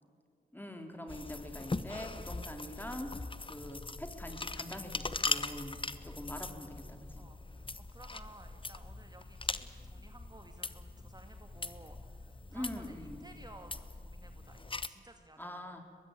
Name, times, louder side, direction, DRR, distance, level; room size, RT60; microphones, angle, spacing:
voice 1, 0.5-3.1 3.4-7.2 12.5-13.3 15.4-15.8, left 1 dB, 10° left, 4 dB, 3.7 m, -44 dB
sound 1, 1.1-14.9, left 3 dB, 25° left, 1.1 m, -41 dB
voice 2, 7.2-15.8, right 1 dB, 20° right, 5 dB, 2.0 m, -56 dB
23.0 x 20.5 x 9.0 m, 2.4 s
cardioid pair, 45°, 19 cm